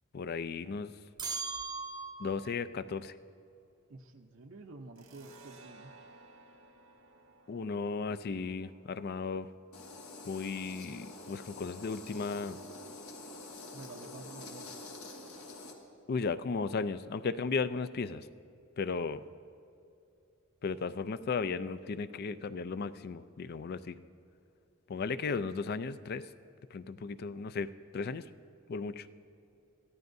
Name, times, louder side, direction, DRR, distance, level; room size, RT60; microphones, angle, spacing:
voice 1, 0.1-0.9 2.2-3.1 7.5-9.5 10.2-12.6 16.1-18.3 18.8-19.2 20.6-24.0 24.9-26.3 26.7-28.2 28.7-29.1, left 4 dB, 50° left, 14 dB, 0.4 m, -35 dB
sound 1, 1.2-2.6, right 4 dB, 20° right, 0.7 m, -38 dB
voice 2, 3.9-5.9 13.7-14.7, right 2 dB, 65° right, 3 dB, 0.7 m, -49 dB
sound 2, 4.9-12.1, right 3 dB, 80° right, 1.5 m, -59 dB
sound 3, 9.7-15.7, left 2 dB, 85° left, 1.6 m, -47 dB
22.5 x 15.0 x 2.7 m, 2.6 s
head